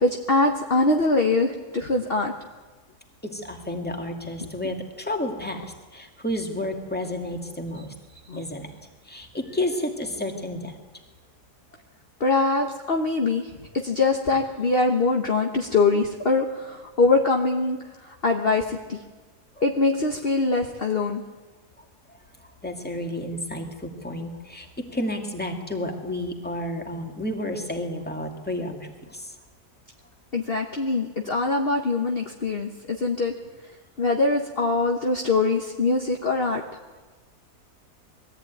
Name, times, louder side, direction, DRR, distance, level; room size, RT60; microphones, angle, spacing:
voice 1, 0.0-2.3 8.3-8.4 12.2-13.5 13.8-17.8 18.0-19.0 19.6-21.2 30.3-33.3 34.0-36.6, left 3 dB, 40° left, 2 dB, 1.3 m, -23 dB
voice 2, 3.2-7.9 8.4-8.7 9.0-10.8 19.6-19.7 22.1-29.4, left 1 dB, 5° left, 2 dB, 2.1 m, -31 dB
21.0 x 14.5 x 9.2 m, 1.3 s
omnidirectional pair, 1.8 m